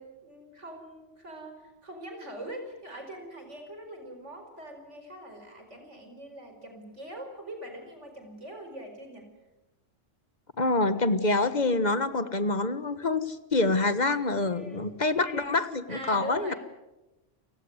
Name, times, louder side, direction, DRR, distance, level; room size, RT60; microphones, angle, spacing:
voice 1, 0.0-9.3 14.5-14.9 15.9-16.6, right 1 dB, 75° right, 5 dB, 5.2 m, -43 dB
voice 2, 10.6-16.5, left 2 dB, 35° left, 12 dB, 1.5 m, -26 dB
29.5 x 16.5 x 9.6 m, 1.0 s
omnidirectional pair, 1.2 m